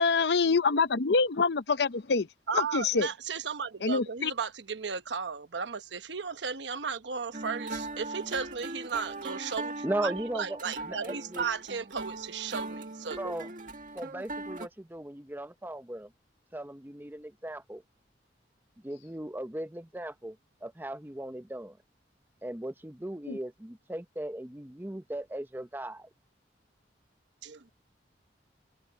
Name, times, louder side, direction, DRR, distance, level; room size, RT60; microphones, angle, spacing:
voice 1, 0.0-2.3 2.5-3.1 3.8-4.3 23.3-23.4, left 4 dB, 70° left, 0.7 m, -26 dB
voice 2, 2.5-13.4 27.4-27.7, right 5 dB, 80° right, 1.1 m, -35 dB
sound 1, 7.3-14.7, right 2 dB, 45° right, 1.9 m, -40 dB
voice 3, 9.8-11.5 13.2-13.5 13.9-16.1 16.5-17.8 18.8-20.4 20.6-21.8 22.4-26.1, right 1 dB, 10° right, 0.7 m, -37 dB
head